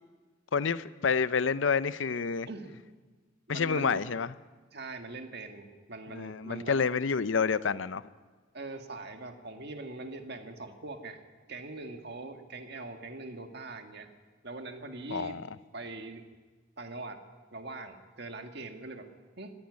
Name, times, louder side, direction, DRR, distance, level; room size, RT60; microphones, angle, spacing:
voice 1, 0.5-2.5 3.5-4.3 6.1-8.0 15.1-15.4, left 5 dB, 75° left, 16 dB, 0.6 m, -28 dB
voice 2, 2.5-2.8 3.5-4.0 4.7-6.8 8.5-11.2 11.5-14.1 14.4-15.4 15.7-16.2 16.8-17.2 17.5-19.1 19.4-19.5, right 2 dB, 55° right, 5 dB, 1.8 m, -42 dB
26.0 x 10.5 x 9.8 m, 1.4 s
head